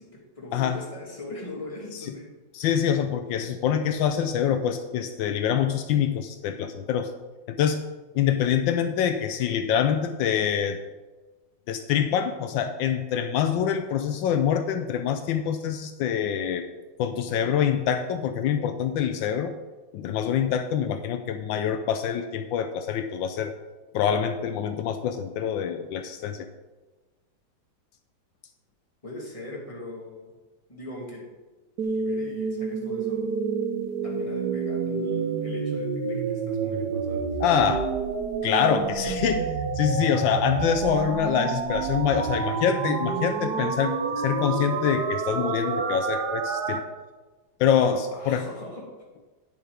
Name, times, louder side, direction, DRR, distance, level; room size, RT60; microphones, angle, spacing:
voice 1, 0.0-2.4 29.0-30.3 30.7-31.3 31.8-33.3 34.0-37.3 47.8-48.9, left 2 dB, 15° left, -3 dB, 2.2 m, -40 dB
voice 2, 2.5-7.1 7.5-7.8 8.1-10.8 11.7-16.7 17.0-19.5 19.9-23.5 23.9-26.5 37.4-37.8 38.4-39.5 39.7-46.8 47.6-48.5, left 8 dB, 80° left, 8 dB, 1.3 m, -25 dB
sound 1, 31.8-46.8, right 5 dB, 65° right, 1.3 m, -28 dB
10.0 x 7.3 x 4.9 m, 1.3 s
omnidirectional pair, 2.1 m